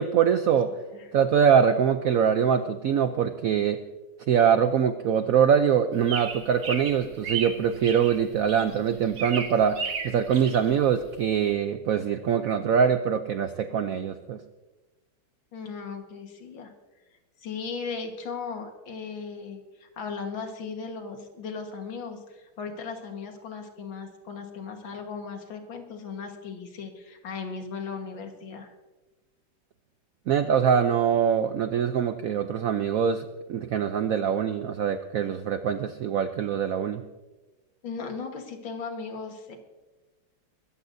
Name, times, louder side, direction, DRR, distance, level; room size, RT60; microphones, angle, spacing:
voice 1, 0.0-0.7 1.1-3.8 4.3-14.4 30.3-37.0, right 8 dB, 75° right, 9 dB, 0.7 m, -23 dB
voice 2, 0.7-1.1 15.5-16.7 17.4-28.7 37.8-39.6, left 5 dB, 75° left, 4 dB, 2.2 m, -37 dB
sound 1, 5.9-11.5, right 5 dB, 50° right, 1.7 m, -35 dB
22.0 x 14.5 x 2.6 m, 1.2 s
omnidirectional pair, 2.1 m